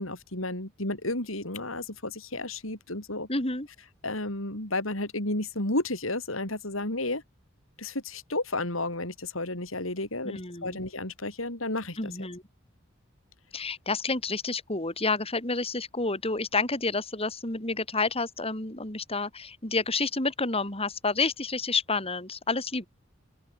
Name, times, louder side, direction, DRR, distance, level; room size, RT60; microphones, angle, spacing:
voice 1, 0.0-3.3 4.0-7.2 7.8-12.3, left 2 dB, 85° left, 7.8 m, -32 dB
voice 2, 3.3-3.7 10.2-10.8 12.0-12.4 13.5-22.9, left 3 dB, 30° left, 5.4 m, -29 dB
open air
head